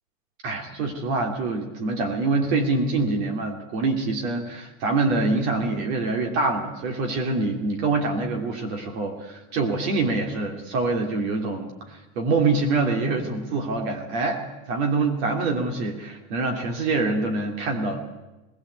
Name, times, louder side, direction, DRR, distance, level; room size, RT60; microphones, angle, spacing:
voice 1, 0.4-18.0, right 3 dB, 70° right, 3 dB, 3.0 m, -25 dB
20.0 x 17.5 x 8.1 m, 1.1 s
supercardioid pair, 155°, 33 cm